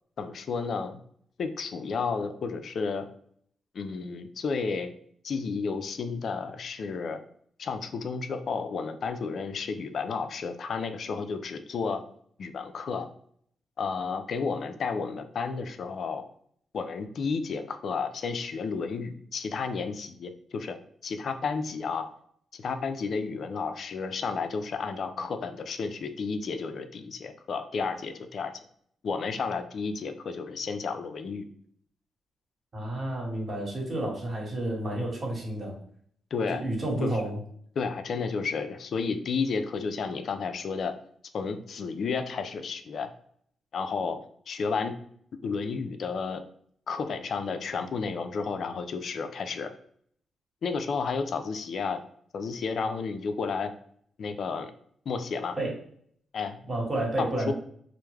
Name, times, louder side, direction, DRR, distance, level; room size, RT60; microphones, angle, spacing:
voice 1, 0.2-1.0 1.4-3.1 3.7-4.9 5.2-7.2 7.6-12.0 12.4-13.1 13.8-16.2 16.7-20.8 21.0-22.1 22.6-28.5 29.0-31.5 36.3-36.6 37.0-37.1 37.8-41.0 41.3-43.1 43.7-44.2 44.5-44.9 45.4-46.4 46.9-49.7 50.6-52.0 52.3-53.7 54.2-54.7 55.1-55.6 56.3-56.6 57.2-57.5, left 5 dB, 65° left, 8 dB, 0.3 m, -32 dB
voice 2, 32.7-35.7 36.5-37.4 55.6-55.7 56.7-57.5, right 1 dB, 40° right, -1 dB, 1.1 m, -30 dB
2.2 x 2.0 x 3.2 m, 0.62 s
supercardioid pair, 60°, 0 cm